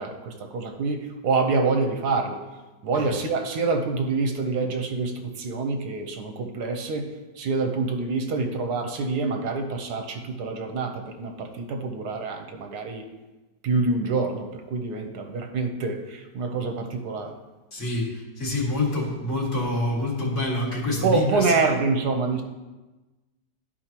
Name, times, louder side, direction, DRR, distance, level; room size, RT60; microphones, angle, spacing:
voice 1, 0.0-2.4 2.8-7.1 7.4-13.1 13.6-17.4 21.0-22.4, right 4 dB, 70° right, 5 dB, 1.4 m, -26 dB
voice 2, 17.7-21.5, left 2 dB, 45° left, -5 dB, 2.3 m, -27 dB
13.0 x 4.7 x 2.9 m, 1.1 s
omnidirectional pair, 1.8 m